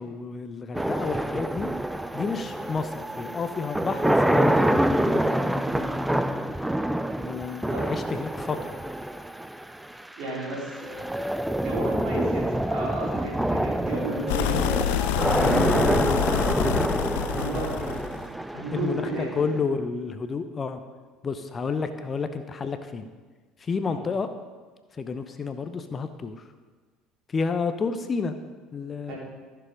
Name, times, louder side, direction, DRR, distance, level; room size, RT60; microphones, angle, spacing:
voice 1, 0.0-1.7 2.1-6.2 7.2-8.7 18.7-19.1 19.4-20.8 21.2-23.1 23.6-24.3 25.0-26.3 27.3-28.3 28.7-29.1, left 5 dB, 30° left, 9 dB, 0.8 m, -30 dB
sound 1, 0.7-19.8, right 1 dB, 5° right, 0.5 m, -26 dB
voice 2, 10.2-10.9 11.6-14.8 15.4-16.1 17.4-18.2 18.5-19.5 23.8-24.0 29.1-29.2, right 1 dB, 55° right, -4 dB, 4.4 m, -33 dB
sound 2, 14.3-18.3, left 11 dB, 70° left, 0.4 m, -27 dB
14.0 x 7.0 x 5.1 m, 1.4 s
figure-of-eight pair, 65°, 0 cm